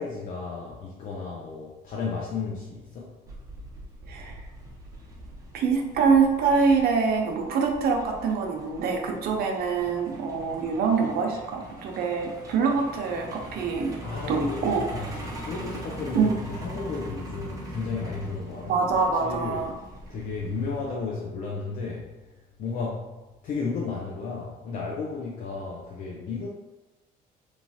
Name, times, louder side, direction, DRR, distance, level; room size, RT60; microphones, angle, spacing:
voice 1, 0.0-3.2 14.0-18.8 19.1-19.6 20.1-22.3 22.6-26.5, left 4 dB, 55° left, 0.5 m, -33 dB
Truck, 3.3-21.0, right 1 dB, 20° right, 0.7 m, -42 dB
voice 2, 4.1-4.4 5.5-13.9 14.3-14.8 16.1-16.3 18.7-19.7, right 5 dB, 65° right, 0.6 m, -24 dB
3.0 x 2.3 x 2.7 m
cardioid pair, 110°, 17 cm